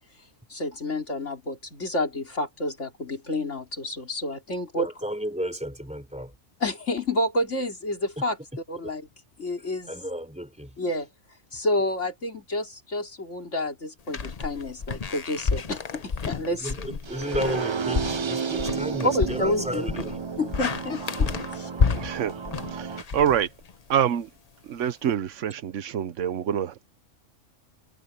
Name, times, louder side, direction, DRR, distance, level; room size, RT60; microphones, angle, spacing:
voice 1, 0.5-4.9 6.6-8.4 8.7-9.1 9.4-9.9 10.8-11.1 11.5-16.8 19.0-19.9 20.4-21.7, left 1 dB, 65° left, 4.2 m, -29 dB
voice 2, 4.7-6.3 9.9-10.7 16.5-20.2, equal, 5° right, 4.0 m, -33 dB
sound 1, 14.1-23.9, left 5 dB, 35° left, 0.8 m, -30 dB
sound 2, 17.0-23.0, right 6 dB, 50° right, 0.3 m, -32 dB
voice 3, 21.9-22.3 22.7-23.5 23.9-24.3 24.7-26.9, right 9 dB, 70° right, 1.1 m, -26 dB
omnidirectional pair, 1.3 m